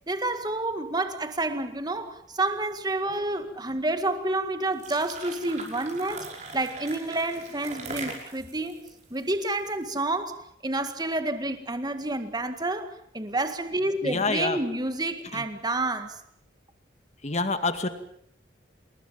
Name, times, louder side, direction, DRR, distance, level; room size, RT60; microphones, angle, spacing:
voice 1, 0.1-6.3 6.5-8.8 9.1-16.2, right 2 dB, 20° right, 1.9 m, -29 dB
sound 1, 4.7-9.9, right 3 dB, 40° right, 5.7 m, -41 dB
voice 2, 14.0-14.6 15.3-15.4 17.2-17.9, left 3 dB, 35° left, 2.2 m, -27 dB
27.5 x 21.0 x 7.4 m
head